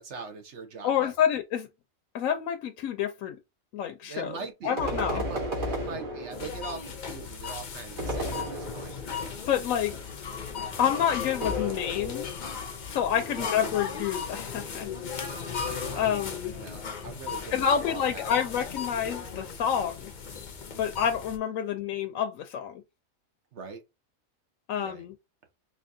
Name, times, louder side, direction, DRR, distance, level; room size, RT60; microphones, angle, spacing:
voice 1, 0.0-1.1 4.0-4.8 5.1-9.0 13.2-13.6 15.6-16.1 16.6-18.2 23.5-23.8 24.7-25.1, right 5 dB, 60° right, 1.2 m, -42 dB
voice 2, 0.8-1.7 2.1-3.4 3.7-4.3 4.6-5.2 9.5-9.9 10.8-12.4 12.9-14.9 16.0-16.5 17.5-20.1 20.8-22.8 24.7-25.1, left 8 dB, 75° left, 1.0 m, -28 dB
sound 1, 4.8-6.7 8.0-9.2 11.4-12.4, equal, 40° right, 1.3 m, -33 dB
sound 2, 6.3-21.4, left 6 dB, 50° left, 0.6 m, -36 dB
4.3 x 2.9 x 2.6 m
omnidirectional pair, 1.4 m